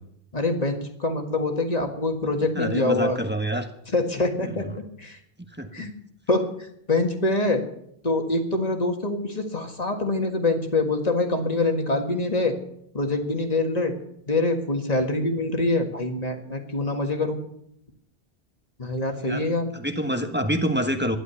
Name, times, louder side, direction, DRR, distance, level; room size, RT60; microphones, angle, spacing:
voice 1, 0.3-3.2 3.9-4.7 5.0-5.2 5.7-5.9 6.3-7.6 8.0-12.6 12.9-13.9 14.3-17.4 18.8-19.7, left 2 dB, 40° left, 4 dB, 1.9 m, -25 dB
voice 2, 2.5-3.7 4.4-4.6 5.5-5.9 19.2-19.5 19.7-21.2, equal, 10° right, 4 dB, 1.3 m, -27 dB
12.5 x 11.0 x 7.0 m, 0.73 s
omnidirectional pair, 1.0 m